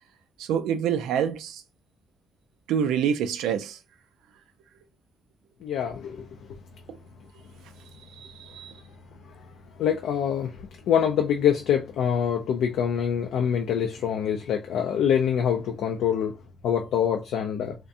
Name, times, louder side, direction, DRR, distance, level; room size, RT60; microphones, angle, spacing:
voice 1, 0.4-1.6 2.7-3.8 8.4-8.7, right 8 dB, 90° right, 0.3 m, -26 dB
voice 2, 5.6-6.3 9.8-16.3 16.6-17.8, left 8 dB, 80° left, 0.3 m, -25 dB
2.4 x 2.1 x 2.6 m
cardioid pair, 90°, 0 cm